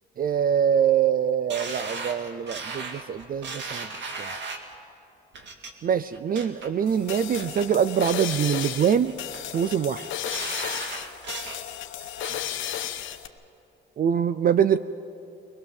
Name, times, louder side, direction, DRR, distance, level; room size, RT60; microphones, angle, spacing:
voice 1, 0.2-3.9 4.2-4.3 5.8-9.1 9.5-10.1 14.0-14.8, right 8 dB, 45° right, 14 dB, 0.5 m, -24 dB
sound 1, 1.5-4.7 5.3-5.7 6.1-6.7 7.1-7.6 8.0-8.7 9.0-9.6 10.0-11.6 12.0-12.6 13.0-13.1, right 4 dB, 65° right, 2.2 m, -37 dB
sound 2, 6.9-13.3, left 11 dB, 80° left, 1.0 m, -34 dB
21.5 x 21.0 x 7.3 m, 2.8 s
cardioid pair, 90°, 20 cm